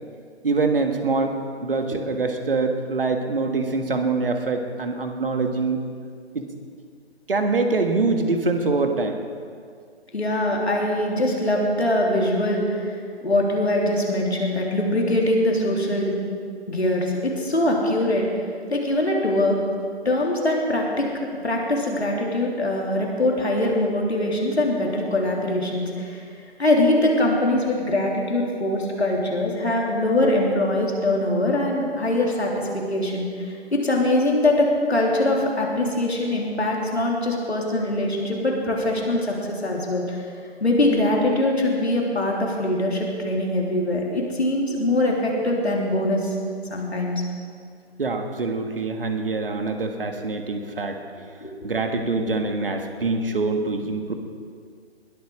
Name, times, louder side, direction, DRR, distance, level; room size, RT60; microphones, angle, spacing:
voice 1, 0.4-1.3 1.6-5.8 6.3-6.5 7.3-9.2 48.0-51.0 51.6-54.1, right 3 dB, 55° right, 5 dB, 1.7 m, -24 dB
voice 2, 10.1-16.1 16.7-18.3 18.7-19.6 20.1-26.2 26.6-40.3 40.6-46.3 46.7-47.2 51.4-51.5, left 1 dB, 70° left, -1 dB, 3.5 m, -23 dB
20.5 x 8.8 x 6.3 m, 2.1 s
figure-of-eight pair, 140°, 33 cm